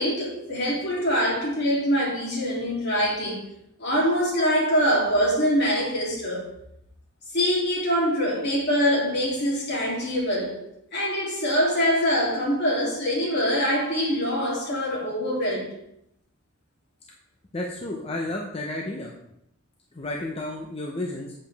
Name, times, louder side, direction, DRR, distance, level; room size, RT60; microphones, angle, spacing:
voice 1, 0.0-3.5 3.8-6.5 7.3-10.6 10.9-15.8, equal, 55° left, 3.0 m, -24 dB
voice 2, 17.5-19.1 19.9-21.3, left 2 dB, 30° left, 0.8 m, -32 dB
7.7 x 7.1 x 3.5 m
head